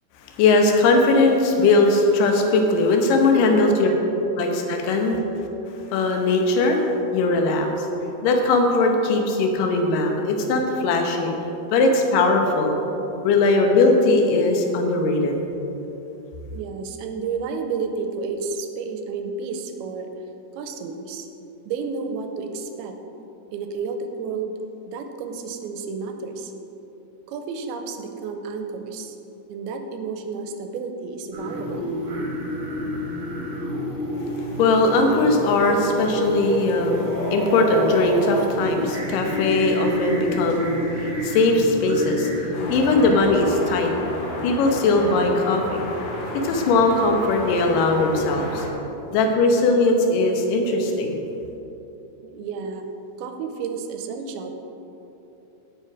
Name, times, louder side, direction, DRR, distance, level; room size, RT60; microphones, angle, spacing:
voice 1, 0.4-3.9 4.2-5.2 5.9-6.8 7.1-7.9 8.2-11.3 11.7-12.8 13.2-15.4 34.6-42.3 42.7-43.9 44.4-45.9 46.4-48.6 49.1-51.2, left 3 dB, 65° left, 2 dB, 2.4 m, -19 dB
voice 2, 3.2-4.0 4.8-4.9 16.5-20.1 20.6-21.3 21.7-23.0 23.5-24.6 24.9-26.5 27.3-29.2 29.5-31.9 52.2-52.9 53.2-54.5, right 5 dB, 80° right, 6 dB, 2.6 m, -31 dB
sound 1, 31.3-43.2, equal, 30° right, 1.6 m, -29 dB
sound 2, 42.5-48.7, left 1 dB, 85° left, 3.8 m, -32 dB
17.0 x 6.4 x 4.8 m, 3.0 s
omnidirectional pair, 4.7 m